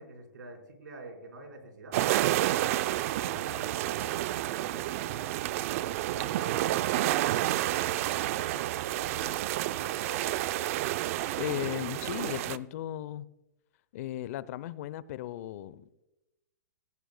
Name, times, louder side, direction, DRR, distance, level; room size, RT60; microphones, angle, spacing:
voice 1, 0.0-2.0 2.5-5.3 5.8-10.4, right 2 dB, 80° right, 4.4 m, -47 dB
sound 1, 1.9-12.6, right 14 dB, 45° right, 0.5 m, -30 dB
voice 2, 11.4-13.3 13.9-16.0, left 13 dB, 50° left, 0.6 m, -36 dB
17.0 x 15.5 x 2.2 m
hypercardioid pair, 135°, 10 cm